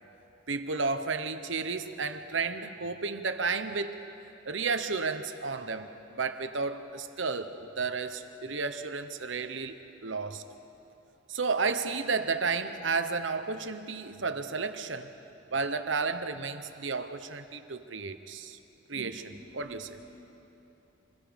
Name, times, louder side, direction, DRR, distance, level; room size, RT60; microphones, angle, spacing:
voice 1, 0.5-4.0 4.4-9.8 10.0-10.5 11.3-15.1 15.5-18.6 18.9-20.0, right 4 dB, 75° right, 9 dB, 1.1 m, -32 dB
voice 2, 19.4-20.2, equal, 75° left, -6 dB, 5.6 m, -53 dB
28.0 x 21.5 x 5.3 m, 3.0 s
head